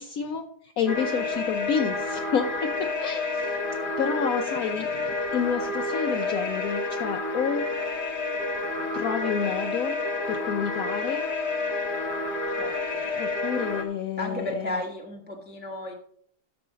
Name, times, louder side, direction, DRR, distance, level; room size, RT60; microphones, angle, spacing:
voice 1, 0.0-3.5 4.0-7.7 8.9-10.0 10.3-11.3 12.9-14.8, left 7 dB, 65° left, 5 dB, 1.1 m, -29 dB
sound 1, 0.9-13.8, left 3 dB, 35° left, 1.3 m, -29 dB
voice 2, 12.6-13.0 14.2-15.9, left 1 dB, 5° right, 0 dB, 1.2 m, -34 dB
13.0 x 4.8 x 5.1 m, 0.63 s
omnidirectional pair, 1.8 m